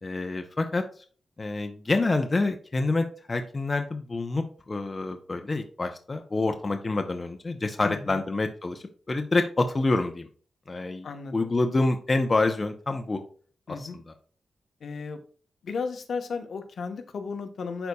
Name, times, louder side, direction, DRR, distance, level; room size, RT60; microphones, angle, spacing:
voice 1, 0.0-0.8 1.4-10.3 10.7-11.1 11.3-13.2 13.7-14.1, left 2 dB, 25° left, 5 dB, 0.6 m, -27 dB
voice 2, 7.8-8.2 11.0-11.5 13.7-14.0 14.8-15.2 15.6-17.9, left 5 dB, 65° left, 7 dB, 0.9 m, -34 dB
11.5 x 4.1 x 2.3 m, 0.42 s
wide cardioid pair, 155°, 0 cm